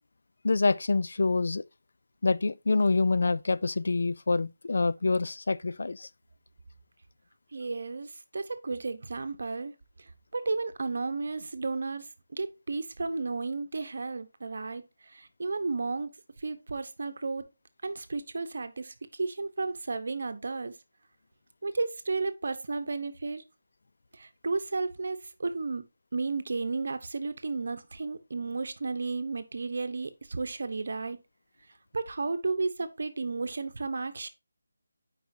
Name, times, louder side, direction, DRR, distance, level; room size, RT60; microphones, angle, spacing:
voice 1, 0.4-1.6 2.2-6.1, left 3 dB, 60° left, 0.3 m, -26 dB
voice 2, 7.5-9.7 10.3-16.1 16.4-17.5 17.8-20.7 21.6-23.4 24.1-25.8 26.1-31.2 31.9-34.3, right 3 dB, 55° right, 0.9 m, -33 dB
9.4 x 5.0 x 2.7 m
figure-of-eight pair, 170°, 0 cm